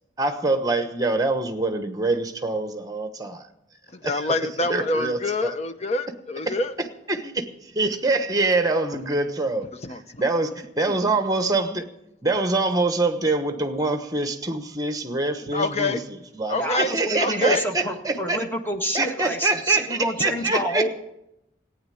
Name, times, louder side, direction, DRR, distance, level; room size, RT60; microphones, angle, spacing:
voice 1, 0.2-3.5 4.0-4.3 4.7-5.5 6.5-6.6 7.1-11.8 12.2-18.4 18.9-20.8, right 3 dB, 20° right, 1.1 m, -25 dB
voice 2, 4.0-6.7 9.8-10.2 15.5-16.1 16.5-17.6, left 2 dB, 35° left, 0.8 m, -26 dB
voice 3, 16.6-20.9, equal, 10° left, 1.5 m, -28 dB
15.5 x 9.4 x 7.7 m
head